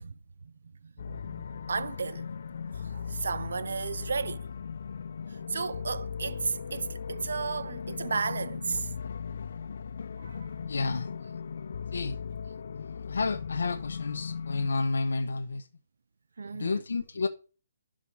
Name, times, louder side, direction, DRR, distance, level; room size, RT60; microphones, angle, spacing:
voice 1, 0.0-2.3 2.7-4.5 5.3-8.9 10.2-10.5 16.4-16.9, right 5 dB, 65° right, 0.6 m, -34 dB
sound 1, 1.0-14.7, left 6 dB, 50° left, 0.4 m, -38 dB
voice 2, 10.7-11.1 11.9-12.2 12.7-15.7 16.5-17.3, left 3 dB, 75° left, 0.9 m, -31 dB
11.5 x 5.1 x 6.3 m
hypercardioid pair, 175°, 0 cm